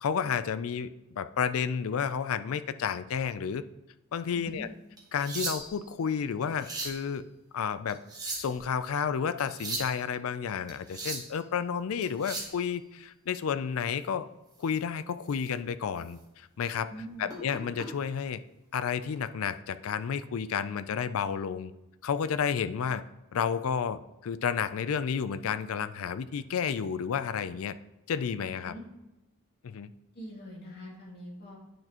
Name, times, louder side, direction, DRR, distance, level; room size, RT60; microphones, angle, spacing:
voice 1, 0.0-3.6 4.1-4.7 5.1-7.3 7.5-8.0 8.4-14.3 14.6-16.9 17.2-18.4 18.7-21.7 22.0-23.0 23.3-27.7 28.1-28.7 29.6-29.9, left 7 dB, 70° left, 13 dB, 0.4 m, -31 dB
voice 2, 4.3-4.7 16.9-17.3 28.6-28.8 30.1-31.6, equal, 45° left, -5 dB, 2.5 m, -43 dB
sound 1, 5.0-5.9 6.4-7.0 7.9-8.6 9.4-9.9 10.7-11.3 12.0-12.6 14.6-14.8 15.3-15.5 16.0-16.1 17.3-17.9 19.0-19.2, right 3 dB, 15° right, 1.3 m, -37 dB
9.2 x 6.1 x 3.0 m, 0.98 s
head